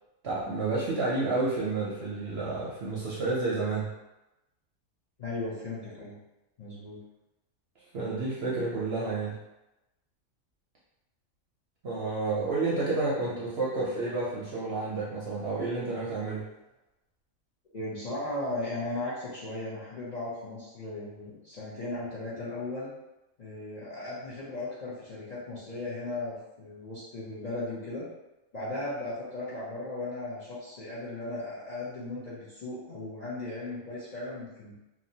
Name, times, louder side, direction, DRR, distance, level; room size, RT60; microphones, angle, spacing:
voice 1, 0.2-3.9 7.9-9.4 11.8-16.5, right 3 dB, 60° right, -6 dB, 0.7 m, -30 dB
voice 2, 5.2-6.2 6.6-7.0 17.7-22.9 23.4-28.1 28.5-34.8, left 2 dB, 45° left, -9 dB, 0.5 m, -36 dB
2.8 x 2.1 x 2.7 m, 0.97 s
omnidirectional pair, 1.5 m